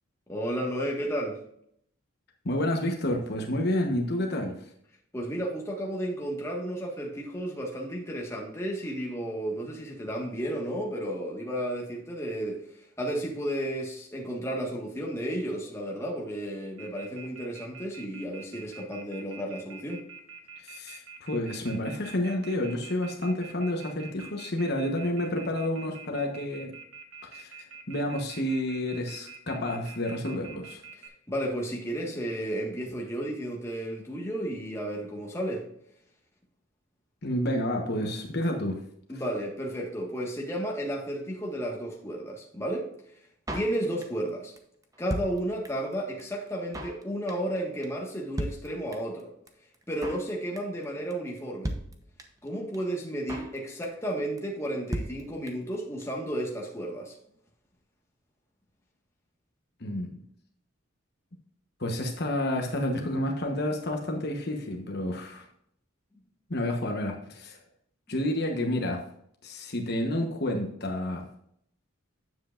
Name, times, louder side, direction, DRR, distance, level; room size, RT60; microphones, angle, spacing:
voice 1, 0.3-1.4 5.1-12.6 13.0-20.0 31.3-35.6 39.1-42.9 43.5-44.5 45.0-49.3 49.9-51.7 52.4-57.1, right 1 dB, 15° left, -1 dB, 1.6 m, -33 dB
voice 2, 2.4-4.6 20.6-26.7 27.3-27.5 27.9-30.8 37.2-38.8 59.8-60.2 61.8-65.4 66.5-67.6 68.1-69.0 69.4-71.2, left 1 dB, 50° left, 2 dB, 1.1 m, -30 dB
Telephone, 16.8-31.1, right 6 dB, 90° right, 1.4 m, -46 dB
Drum kit, 43.5-44.3 44.6-44.7 44.8-45.9 46.2-46.3 46.5-47.0 47.3-47.6 47.8-47.9 48.1-48.2 48.4-49.2 49.5-49.6 49.7-50.3 50.6-50.8 51.1-51.2 51.4-51.5 51.6-52.5 52.7-52.8 53.0-53.6 53.8-54.1 54.4-54.5 54.7-54.8 54.9-55.8 56.0-56.1 56.3-56.4, right 1 dB, 15° right, 0.8 m, -36 dB
9.4 x 7.7 x 2.5 m, 0.70 s
head